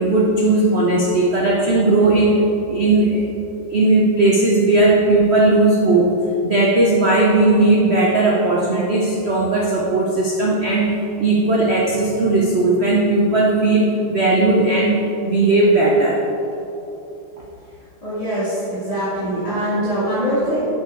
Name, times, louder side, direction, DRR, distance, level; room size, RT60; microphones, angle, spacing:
voice 1, 0.0-2.4 2.7-3.3 3.7-6.1 6.4-10.9 11.2-15.0 15.2-16.2, right 2 dB, 70° right, -3 dB, 0.6 m, -17 dB
voice 2, 18.0-20.7, equal, 20° left, -12 dB, 1.8 m, -23 dB
6.7 x 6.5 x 4.6 m, 2.9 s
omnidirectional pair, 2.2 m